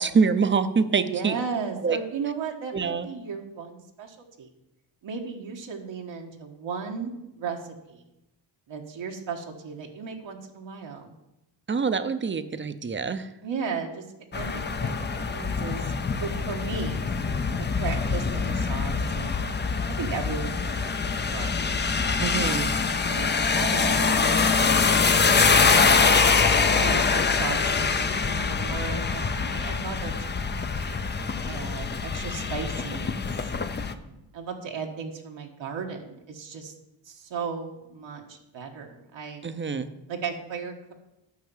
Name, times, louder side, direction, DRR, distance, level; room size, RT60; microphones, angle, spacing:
voice 1, 0.0-1.4 1.8-2.0 2.7-3.1 11.7-13.3 22.2-22.7 39.4-39.9, right 5 dB, 25° right, 11 dB, 0.7 m, -25 dB
voice 2, 1.0-4.5 5.0-8.0 8.7-11.1 13.4-14.0 14.3-17.1 17.5-19.4 20.0-22.0 22.3-22.8 23.1-24.9 25.7-30.9 31.4-33.1 33.4-36.7 37.0-39.4 40.1-40.9, right 5 dB, 80° right, 1 dB, 1.6 m, -36 dB
sound 1, 14.3-33.9, left 5 dB, 25° left, 0.6 m, -24 dB
9.5 x 5.8 x 7.3 m, 0.91 s
cardioid pair, 110°, 45 cm